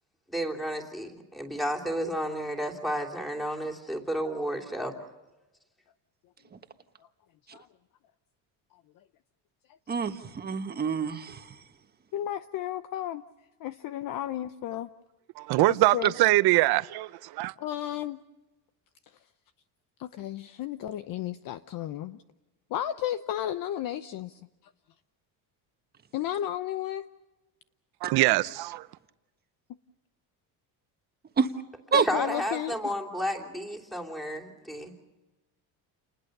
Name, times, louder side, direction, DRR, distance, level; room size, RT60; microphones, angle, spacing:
voice 1, 0.3-5.0 31.9-35.0, equal, ahead, 3.1 m, -32 dB
voice 2, 9.9-11.6 31.4-31.5 31.9-32.0, right 6 dB, 20° right, 1.5 m, -28 dB
voice 3, 12.1-13.2 13.6-14.9 15.7-16.1 17.6-18.2 19.1-19.2 20.0-22.2 22.7-24.7 26.1-27.1 31.9-32.9, left 12 dB, 50° left, 0.8 m, -33 dB
voice 4, 15.4-17.5 28.0-28.9, right 18 dB, 65° right, 0.8 m, -23 dB
29.5 x 20.5 x 6.7 m
cardioid pair, 150°, 42 cm